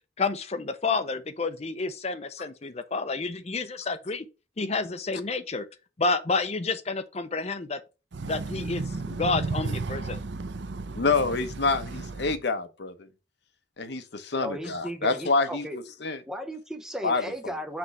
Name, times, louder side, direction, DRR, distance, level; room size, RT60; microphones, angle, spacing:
voice 1, 0.2-4.3 4.6-5.7 6.0-7.8 8.3-8.8 9.2-10.0, left 3 dB, 35° left, 0.6 m, -29 dB
voice 2, 8.1-12.4, right 3 dB, 65° right, 0.6 m, -33 dB
voice 3, 11.0-13.1 13.8-16.2 17.0-17.5, left 3 dB, 60° left, 0.9 m, -27 dB
voice 4, 14.4-15.8 16.3-17.8, equal, 5° right, 0.8 m, -35 dB
6.0 x 3.2 x 5.5 m
head